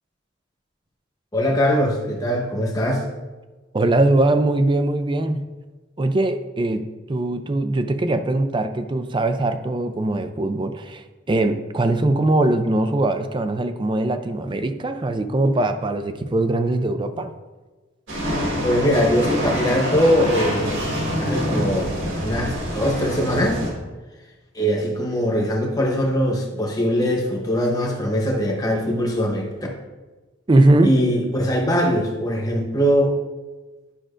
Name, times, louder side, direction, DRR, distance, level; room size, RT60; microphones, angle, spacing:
voice 1, 1.3-3.0 18.6-20.9 21.2-21.9 22.2-23.6 24.5-29.7 30.8-33.2, equal, 20° left, 0 dB, 1.1 m, -21 dB
voice 2, 3.7-5.4 6.0-17.3 30.5-30.9, right 2 dB, 25° right, 9 dB, 0.4 m, -21 dB
sound 1, 18.1-23.7, equal, 80° right, 2.0 m, -26 dB
10.0 x 6.1 x 2.5 m, 1.2 s
head